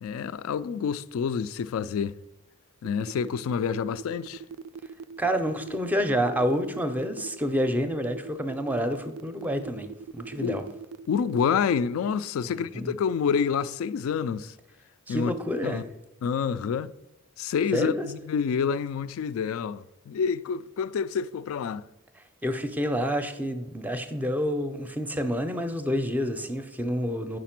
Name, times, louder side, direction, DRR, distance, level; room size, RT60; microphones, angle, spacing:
voice 1, 0.0-2.2 2.8-4.4 10.4-10.6 11.1-14.6 15.1-15.3 15.6-15.8 16.2-16.9 17.4-21.9, left 6 dB, 70° left, 0.3 m, -28 dB
sound 1, 2.8-12.2, right 6 dB, 80° right, 0.3 m, -41 dB
voice 2, 5.2-10.6 12.4-12.9 15.1-15.9 17.7-18.1 22.4-27.4, equal, 10° right, 0.5 m, -28 dB
5.0 x 4.9 x 5.8 m
head